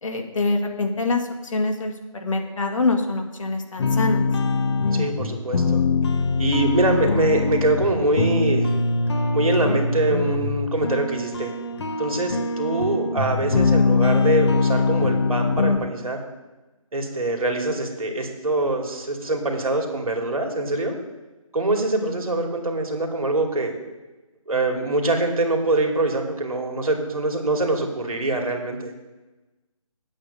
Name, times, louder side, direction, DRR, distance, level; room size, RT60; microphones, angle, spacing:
voice 1, 0.0-4.3, left 3 dB, 65° left, 3 dB, 2.0 m, -25 dB
sound 1, 3.8-15.8, left 3 dB, 50° left, 1.1 m, -22 dB
voice 2, 4.9-5.8 6.4-8.7 9.3-11.5 12.0-16.2 16.9-21.0 21.5-23.7 24.5-28.9, right 2 dB, 75° right, 2 dB, 2.5 m, -24 dB
8.6 x 8.1 x 6.5 m, 1.1 s
figure-of-eight pair, 160°, 18 cm